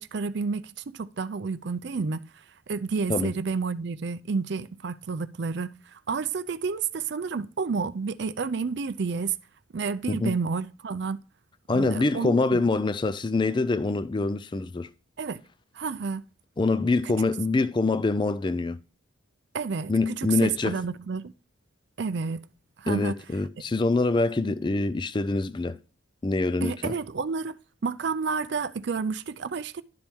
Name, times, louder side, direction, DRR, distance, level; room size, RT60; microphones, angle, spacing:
voice 1, 0.0-9.4 9.7-11.2 11.7-12.6 15.2-15.4 15.7-16.2 17.0-17.2 19.5-21.3 22.0-22.4 22.8-23.2 26.6-29.8, right 5 dB, 55° right, 0.4 m, -30 dB
voice 2, 11.7-14.9 16.6-18.8 19.9-20.8 22.9-25.8 26.2-26.9, left 3 dB, 25° left, 0.3 m, -25 dB
11.5 x 4.5 x 3.5 m
head